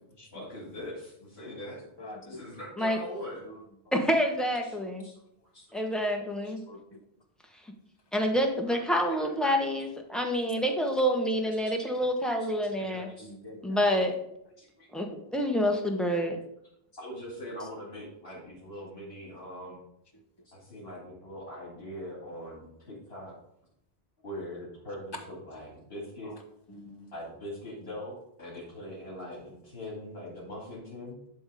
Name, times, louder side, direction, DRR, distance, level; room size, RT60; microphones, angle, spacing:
voice 1, 0.3-1.8 2.2-3.4 4.6-6.0 8.7-9.3 13.1-13.3 14.6-14.9 16.9-19.8 20.4-23.3 24.2-26.3 27.1-31.2, left 1 dB, 75° left, -7 dB, 2.6 m, -42 dB
voice 2, 2.0-2.4 3.4-3.6 6.7-7.0 12.8-13.9 26.2-26.3 26.7-27.1, left 1 dB, 25° left, 3 dB, 1.1 m, -46 dB
voice 3, 3.9-5.1 5.7-6.6 8.1-13.1 13.6-14.1 14.9-16.4, equal, ahead, 2 dB, 1.0 m, -27 dB
10.5 x 3.6 x 4.9 m, 0.77 s
omnidirectional pair, 1.0 m